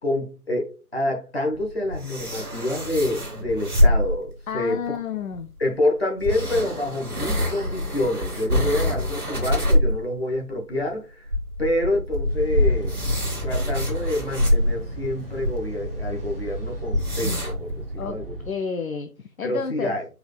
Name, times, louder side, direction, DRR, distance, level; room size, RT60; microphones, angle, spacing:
voice 1, 0.0-5.0 5.6-11.3 11.6-13.0 13.4-18.4 19.4-20.1, left 1 dB, 40° left, 1.2 m, -27 dB
sound 1, 1.5-4.3 5.3-5.4 6.2-10.0 10.3-10.4 10.8-10.9 11.3-15.5 16.0-16.1 16.3-16.4 16.9-17.7, left 1 dB, 75° right, 1.8 m, -24 dB
voice 2, 4.5-5.5 18.0-18.2 18.4-19.9, left 6 dB, 65° left, 0.5 m, -30 dB
sound 2, 12.3-18.5, right 1 dB, 40° right, 1.1 m, -34 dB
4.6 x 3.4 x 2.3 m
figure-of-eight pair, 160°, 45 cm